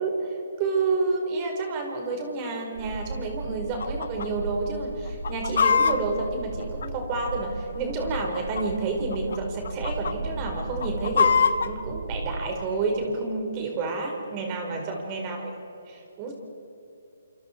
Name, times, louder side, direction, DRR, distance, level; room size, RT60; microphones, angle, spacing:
voice 1, 0.0-15.5 15.9-16.3, right 3 dB, 30° right, 2 dB, 4.9 m, -29 dB
sound 1, 2.7-12.7, right 2 dB, 65° right, 3.4 m, -36 dB
Chicken rooster, 3.8-4.3 4.5-4.6 5.1-7.3 8.1-8.8 9.1-9.4 9.7-10.1 10.6-11.7, left 6 dB, 60° left, 1.5 m, -23 dB
29.0 x 27.5 x 4.7 m, 2.8 s
figure-of-eight pair, 140°, 0 cm